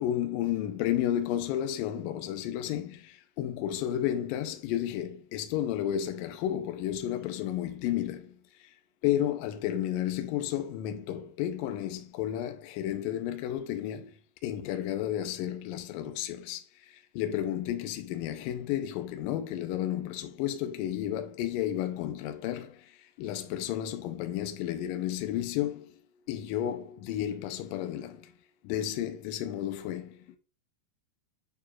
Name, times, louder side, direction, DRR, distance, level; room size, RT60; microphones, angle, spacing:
voice 1, 0.0-8.7 9.0-14.1 14.4-25.9 26.3-28.3 28.6-30.4, left 11 dB, 85° left, 2.0 m, -32 dB
8.5 x 4.6 x 2.4 m
omnidirectional pair, 4.6 m